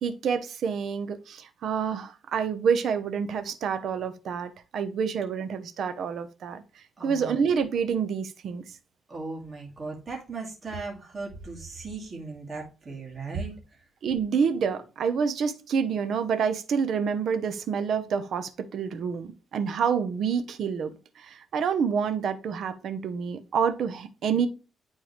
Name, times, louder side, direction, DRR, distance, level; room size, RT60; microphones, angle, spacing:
voice 1, 0.0-8.8 14.0-24.5, right 6 dB, 60° right, 0.8 m, -28 dB
voice 2, 7.0-7.4 9.1-13.6, right 3 dB, 30° right, 2.1 m, -37 dB
9.7 x 3.8 x 3.1 m
cardioid pair, 155°, 0 cm